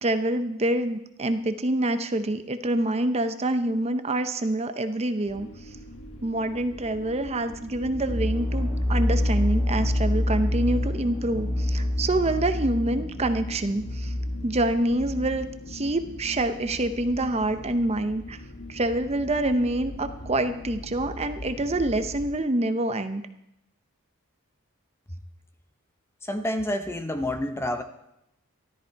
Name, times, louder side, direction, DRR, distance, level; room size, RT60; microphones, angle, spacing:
voice 1, 0.0-5.5 6.2-14.1 14.4-18.4 18.7-23.2, right 1 dB, 30° right, 9 dB, 0.7 m, -26 dB
sound 1, 5.2-22.3, left 1 dB, 70° left, 1.3 m, -41 dB
sound 2, 7.9-15.5, left 1 dB, 5° right, 2.6 m, -27 dB
voice 2, 26.2-27.8, left 1 dB, 10° left, 8 dB, 0.7 m, -29 dB
13.5 x 13.5 x 4.6 m, 0.82 s
head